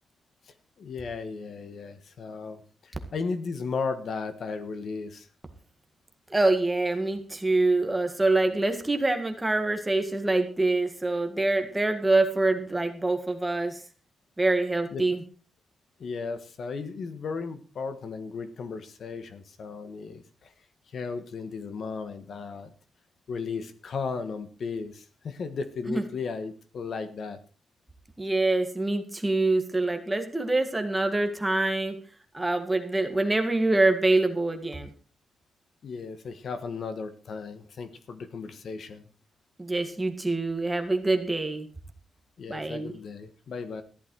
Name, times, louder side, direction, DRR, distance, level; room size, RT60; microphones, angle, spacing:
voice 1, 0.5-5.3 14.9-15.0 16.0-20.5 20.9-22.7 23.3-27.4 35.8-39.1 42.4-43.8, left 4 dB, 55° left, 11 dB, 1.5 m, -35 dB
voice 2, 6.3-13.8 14.4-15.2 25.9-26.0 28.2-32.0 32.3-34.9 39.6-41.7 42.5-43.0, right 2 dB, 10° right, 6 dB, 1.9 m, -25 dB
14.5 x 12.0 x 4.7 m, 0.38 s
wide cardioid pair, 170°, 0 cm